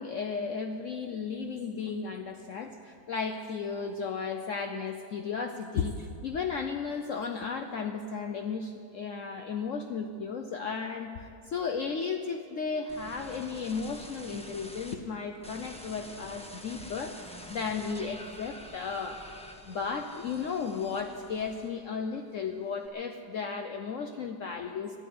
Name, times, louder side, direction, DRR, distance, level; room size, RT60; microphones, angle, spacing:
voice 1, 0.0-19.4 19.6-25.0, left 5 dB, 60° left, 4 dB, 1.0 m, -34 dB
sound 1, 12.9-14.9 15.4-22.0 22.3-22.9, equal, 5° left, 0.9 m, -47 dB
13.5 x 11.5 x 9.4 m, 2.4 s
omnidirectional pair, 1.7 m